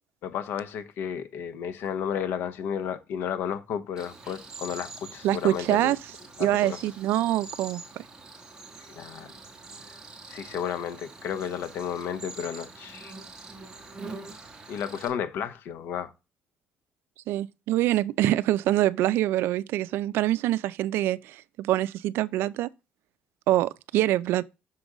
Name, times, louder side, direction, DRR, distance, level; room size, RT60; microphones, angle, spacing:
voice 1, 0.2-6.0 6.4-6.8 8.9-9.3 9.9-10.0 10.3-13.1 14.7-16.1, left 8 dB, 75° left, 0.9 m, -33 dB
Cricket, 4.0-15.1, right 3 dB, 20° right, 1.3 m, -45 dB
voice 2, 5.2-6.0 6.4-8.0 17.3-22.7 23.5-24.4, right 14 dB, 80° right, 0.4 m, -25 dB
6.0 x 3.8 x 4.9 m
cardioid pair, 145°, 4 cm